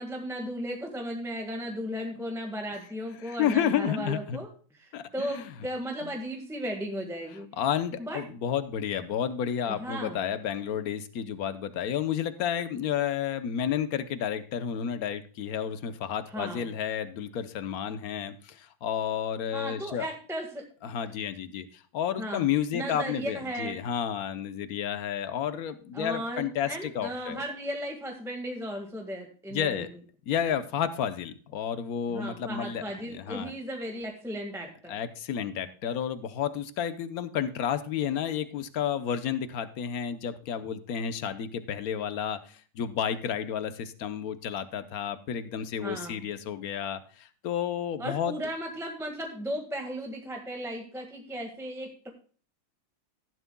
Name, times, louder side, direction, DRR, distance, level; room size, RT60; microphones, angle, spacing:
voice 1, 0.0-7.5 8.0-8.2 9.7-10.2 16.3-16.7 19.5-20.6 22.2-22.5 22.7-23.8 25.9-29.9 32.1-35.0 45.8-46.3 48.0-52.1, equal, ahead, 2 dB, 1.3 m, -36 dB
voice 2, 3.2-4.4 4.9-5.5 6.0-6.1 7.6-20.1 20.8-27.4 29.5-29.9 30.3-32.8 33.1-33.5 34.9-48.3, left 8 dB, 55° left, 11 dB, 1.1 m, -31 dB
15.0 x 11.0 x 2.2 m, 0.41 s
omnidirectional pair, 2.3 m